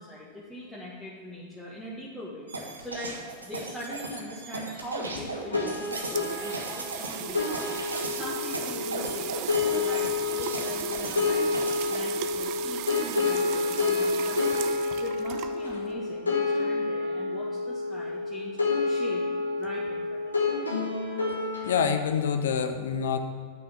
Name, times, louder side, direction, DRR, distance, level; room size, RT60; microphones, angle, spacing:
voice 1, 0.0-3.2 3.4-9.4 9.7-11.6 11.9-18.6 18.8-19.2 19.5-20.6, equal, 5° left, -8 dB, 1.7 m, -41 dB
sound 1, 2.5-12.0, right 2 dB, 80° right, 1.3 m, -37 dB
sound 2, 5.5-22.0, left 4 dB, 75° left, 1.6 m, -29 dB
sound 3, 5.6-15.9, right 13 dB, 45° right, 0.5 m, -37 dB
voice 2, 21.7-23.2, left 7 dB, 60° left, 8 dB, 0.7 m, -26 dB
9.3 x 6.2 x 7.3 m, 2.1 s
figure-of-eight pair, 90°, 0 cm